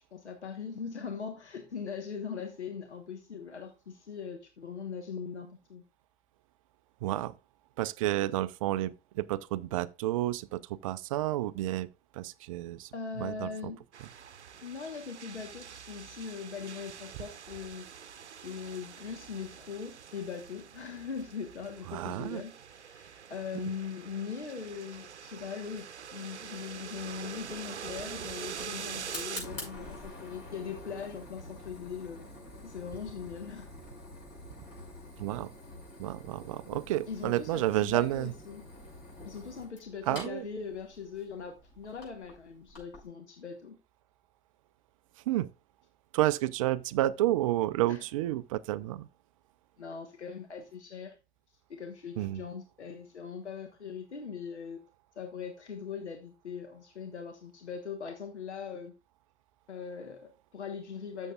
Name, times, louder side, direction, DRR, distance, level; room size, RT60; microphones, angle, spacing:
voice 1, 0.1-5.8 12.9-13.8 14.6-17.9 18.3-32.3 32.6-33.7 36.7-38.6 39.2-43.8 47.9-48.0 49.8-51.2 51.7-54.8 55.2-58.9 59.7-61.3, left 6 dB, 80° left, 1.4 m, -41 dB
voice 2, 7.0-7.4 7.8-11.9 12.1-12.9 13.2-13.7 21.9-22.4 35.2-35.5 36.0-38.3 40.1-40.4 45.3-45.5 46.1-49.1 52.2-52.4, right 15 dB, 30° right, 0.4 m, -30 dB
sound 1, 13.9-29.4, right 7 dB, 80° right, 0.7 m, -45 dB
Fire, 27.4-43.1, left 2 dB, 30° left, 5.8 m, -47 dB
13.0 x 7.1 x 2.4 m
figure-of-eight pair, 105°, 34 cm